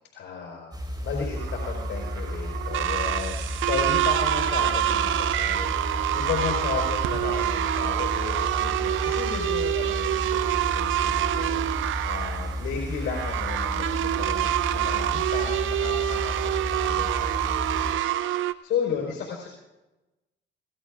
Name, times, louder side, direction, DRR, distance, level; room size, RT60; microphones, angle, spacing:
voice 1, 0.1-0.7 1.0-18.0 18.3-19.5, left 6 dB, 80° left, -3 dB, 4.6 m, -34 dB
sound 1, 0.7-17.9, equal, 20° right, 5.3 m, -33 dB
sound 2, 1.4-18.5, right 12 dB, 80° right, 0.6 m, -26 dB
26.0 x 19.0 x 2.5 m, 1.0 s
cardioid pair, 90°, 20 cm